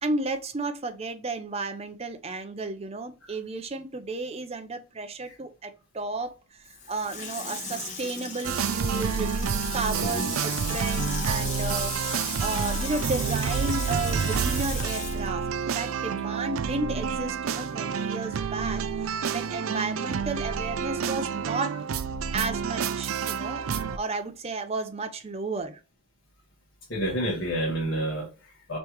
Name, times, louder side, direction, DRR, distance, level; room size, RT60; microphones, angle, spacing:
voice 1, 0.0-15.5 15.7-21.8 22.3-25.8, right 3 dB, 30° right, 0.6 m, -33 dB
Water tap faucet / Sink (filling or washing), 6.6-16.4 16.7-16.8, left 4 dB, 35° left, 1.2 m, -37 dB
sound 1, 8.4-24.0, right 6 dB, 90° right, 0.4 m, -29 dB
voice 2, 10.0-10.3 14.8-14.9 26.9-28.8, right 1 dB, 60° left, 1.4 m, -30 dB
5.3 x 3.2 x 3.0 m
head